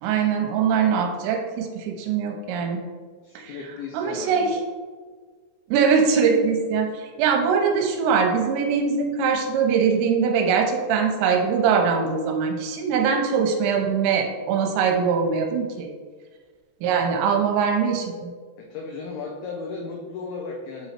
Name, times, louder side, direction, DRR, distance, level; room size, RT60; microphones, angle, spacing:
voice 1, 0.0-2.8 3.4-3.6 3.9-4.5 5.7-15.9 16.8-18.3, right 6 dB, 85° right, 2 dB, 2.9 m, -22 dB
voice 2, 3.2-4.6 18.6-20.9, left 4 dB, 85° left, 0 dB, 2.2 m, -35 dB
8.4 x 3.0 x 4.3 m, 1.5 s
omnidirectional pair, 5.2 m